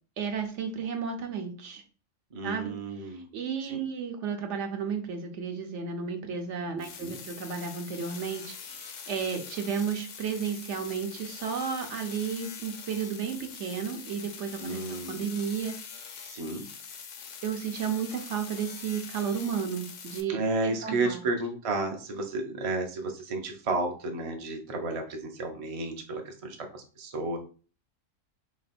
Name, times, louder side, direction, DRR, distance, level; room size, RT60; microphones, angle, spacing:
voice 1, 0.2-1.8 2.4-2.8 3.1-16.2 17.4-21.2, right 6 dB, 70° right, 5 dB, 1.0 m, -33 dB
voice 2, 2.3-3.3 3.6-3.8 6.7-7.2 14.6-15.3 16.2-16.6 20.3-27.4, right 2 dB, 35° right, 3 dB, 0.6 m, -32 dB
sound 1, 6.8-20.2, left 6 dB, 75° left, 1.0 m, -44 dB
3.2 x 3.0 x 4.2 m, 0.38 s
omnidirectional pair, 1.3 m